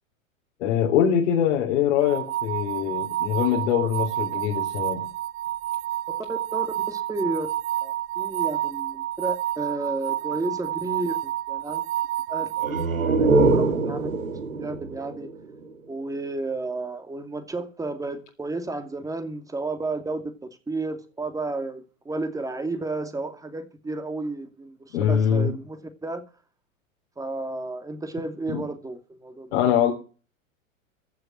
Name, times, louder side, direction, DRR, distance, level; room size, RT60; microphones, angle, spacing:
voice 1, 0.6-5.0 24.9-25.5 28.5-28.6 29.5-29.9, left 9 dB, 60° left, 3.8 m, -23 dB
sound 1, 2.0-12.8, right 13 dB, 30° right, 1.0 m, -29 dB
voice 2, 6.3-7.5 7.8-11.8 12.3-14.1 14.5-15.3 15.9-20.3 20.7-26.2 27.2-29.5, right 2 dB, 10° right, 2.5 m, -32 dB
sound 2, 12.6-16.1, right 3 dB, 85° right, 2.0 m, -24 dB
15.0 x 6.8 x 7.5 m
hypercardioid pair, 105°, 40 cm